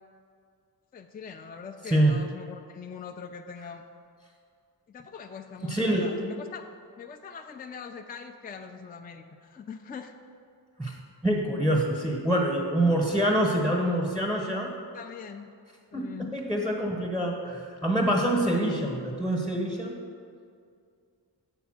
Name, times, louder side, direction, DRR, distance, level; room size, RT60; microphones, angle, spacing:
voice 1, 0.9-3.8 4.9-6.6 7.0-10.1 14.9-15.5 15.9-16.4, left 6 dB, 20° left, 6 dB, 0.4 m, -42 dB
voice 2, 1.8-2.2 5.6-6.1 10.8-11.0 11.2-14.7 15.9-19.9, right 1 dB, ahead, -2 dB, 1.0 m, -26 dB
6.8 x 4.4 x 6.3 m, 2.3 s
cardioid pair, 70°, 43 cm